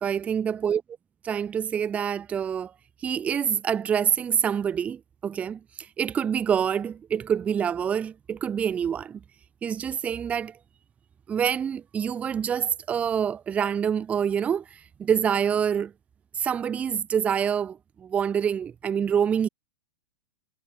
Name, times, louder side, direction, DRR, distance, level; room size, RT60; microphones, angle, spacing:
voice 1, 0.0-0.8 1.2-2.7 3.0-9.2 9.6-10.6 11.3-15.9 16.3-19.5, right 8 dB, 15° right, 0.4 m, -26 dB
supercardioid pair, 145°, 9 cm